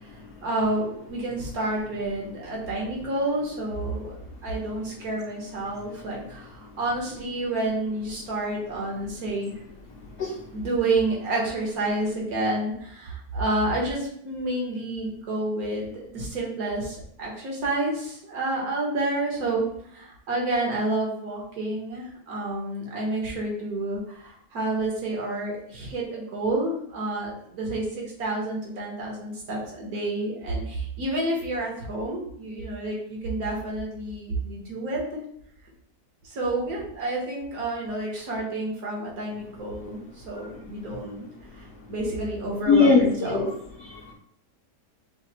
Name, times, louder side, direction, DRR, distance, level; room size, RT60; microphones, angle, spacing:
voice 1, 0.0-4.2 4.4-9.5 10.5-19.6 19.9-35.2 36.2-43.5, right 2 dB, 75° right, -2 dB, 1.8 m, -29 dB
voice 2, 42.7-43.5 43.8-44.1, left 4 dB, 60° left, -2 dB, 0.8 m, -21 dB
5.6 x 2.0 x 4.2 m, 0.69 s
omnidirectional pair, 1.6 m